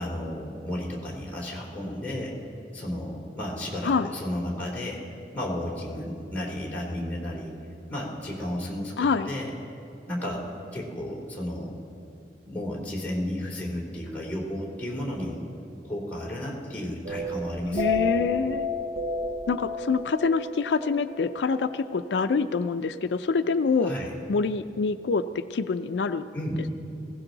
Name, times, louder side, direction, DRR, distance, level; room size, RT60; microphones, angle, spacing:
voice 1, 0.0-2.4 2.7-5.0 5.3-7.5 7.9-8.9 9.3-9.5 10.1-10.5 10.7-11.7 12.4-15.4 15.8-18.1 23.8-24.1 26.3-26.7, left 1 dB, 10° left, -4 dB, 3.0 m, -33 dB
voice 2, 9.0-9.3 17.7-18.7 19.5-23.9 24.3-26.2, left 4 dB, 85° left, 10 dB, 0.4 m, -26 dB
sound 1, 17.0-21.9, left 3 dB, 30° right, 0.8 m, -31 dB
20.0 x 16.5 x 3.9 m, 2.5 s
head